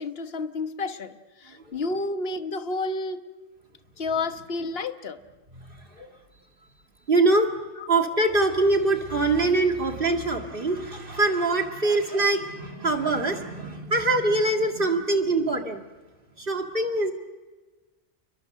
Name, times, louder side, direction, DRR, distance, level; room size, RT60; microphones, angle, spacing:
voice 1, 0.0-3.2 4.0-5.2, left 3 dB, 55° left, 8 dB, 1.5 m, -30 dB
voice 2, 5.6-6.1 7.1-7.5 7.9-15.8 16.4-17.1, right 2 dB, 50° right, 3 dB, 2.3 m, -24 dB
29.5 x 22.5 x 6.6 m, 1.2 s
omnidirectional pair, 1.2 m